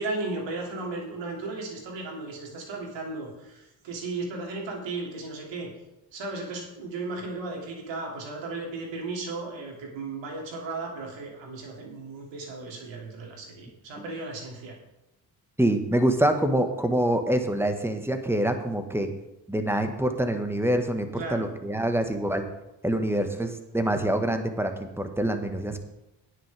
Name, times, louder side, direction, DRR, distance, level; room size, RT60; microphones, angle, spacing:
voice 1, 0.0-5.7 6.1-14.7 21.2-21.5, right 3 dB, 65° right, 0 dB, 3.2 m, -35 dB
voice 2, 15.6-19.1 19.5-22.4 22.8-25.8, right 1 dB, 5° right, 7 dB, 1.8 m, -25 dB
18.5 x 6.6 x 3.7 m, 0.93 s
hypercardioid pair, 40°, 48 cm